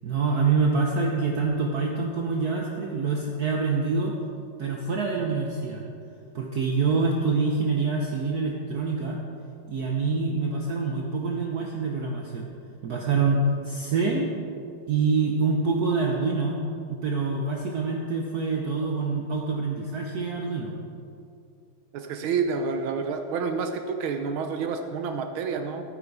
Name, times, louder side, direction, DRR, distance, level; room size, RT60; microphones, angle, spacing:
voice 1, 0.0-4.2 4.6-5.8 6.3-9.2 9.7-12.5 12.8-14.3 14.9-16.6 16.9-20.7, right 4 dB, 55° right, 0 dB, 1.3 m, -26 dB
voice 2, 21.9-25.8, right 5 dB, 80° right, 6 dB, 1.5 m, -29 dB
13.5 x 9.3 x 4.7 m, 2.5 s
omnidirectional pair, 2.3 m